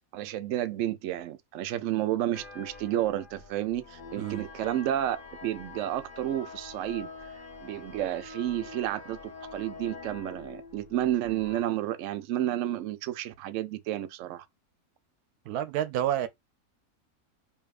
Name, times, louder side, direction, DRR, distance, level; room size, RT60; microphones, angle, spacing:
voice 1, 0.1-5.2 5.4-7.1 7.6-14.5, right 12 dB, 65° right, 0.8 m, -31 dB
sound 1, 2.3-11.6, left 4 dB, 35° left, 1.3 m, -46 dB
voice 2, 15.5-16.3, right 11 dB, 85° right, 1.1 m, -29 dB
4.8 x 2.8 x 2.4 m
omnidirectional pair, 1.6 m